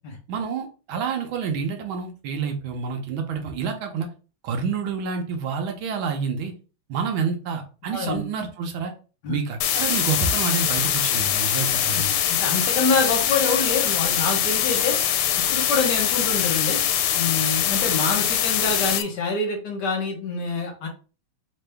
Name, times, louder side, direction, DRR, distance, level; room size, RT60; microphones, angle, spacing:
voice 1, 0.3-4.1 4.4-6.5 6.9-8.9 9.3-12.1, right 5 dB, 70° right, 4 dB, 1.4 m, -28 dB
voice 2, 7.9-8.2 9.2-9.3 11.9-15.0 15.5-16.8 17.1-20.9, left 3 dB, 60° left, 2 dB, 1.5 m, -26 dB
sound 1, 9.6-19.0, left 10 dB, 85° left, 1.5 m, -23 dB
3.7 x 2.6 x 3.3 m, 0.35 s
omnidirectional pair, 2.4 m